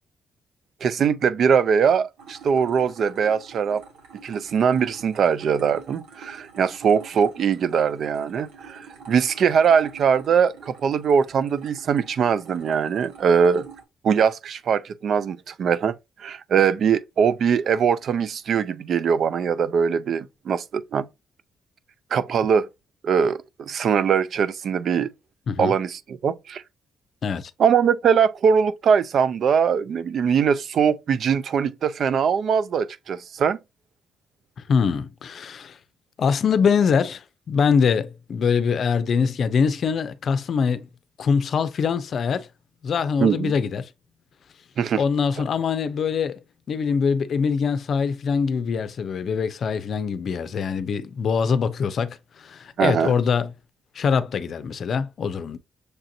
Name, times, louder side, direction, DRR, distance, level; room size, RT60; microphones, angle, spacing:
voice 1, 0.8-3.8 4.2-13.7 14.0-21.1 22.1-22.7 23.0-25.1 25.6-26.6 27.6-33.6 43.2-43.5 44.8-45.0 52.8-53.1, right 7 dB, 60° right, 0.4 m, -21 dB
sound 1, 2.2-13.8, right 5 dB, 90° right, 1.4 m, -46 dB
voice 2, 34.7-35.8 36.2-40.9 41.2-42.5 42.8-43.9 45.0-46.4 46.7-53.5 53.9-55.6, left 6 dB, 55° left, 0.5 m, -23 dB
6.5 x 2.5 x 2.7 m
cardioid pair, 90°, 0 cm